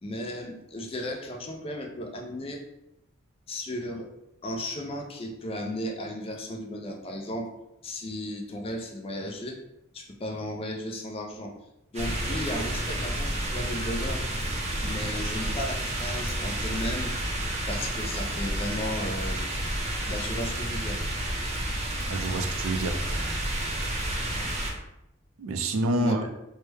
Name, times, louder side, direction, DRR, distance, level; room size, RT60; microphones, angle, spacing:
voice 1, 0.0-2.6 3.5-4.1 4.4-7.5 7.8-9.6 9.9-11.5 11.9-14.2 14.8-17.1 17.7-19.5 20.1-21.0 26.0-26.3, left 1 dB, 25° left, 2 dB, 0.4 m, -35 dB
sound 1, 11.9-24.7, right 1 dB, 30° right, 0.5 m, -30 dB
voice 2, 22.1-23.5 25.4-26.2, right 1 dB, 85° right, 5 dB, 0.4 m, -29 dB
3.2 x 2.1 x 3.3 m, 0.84 s
head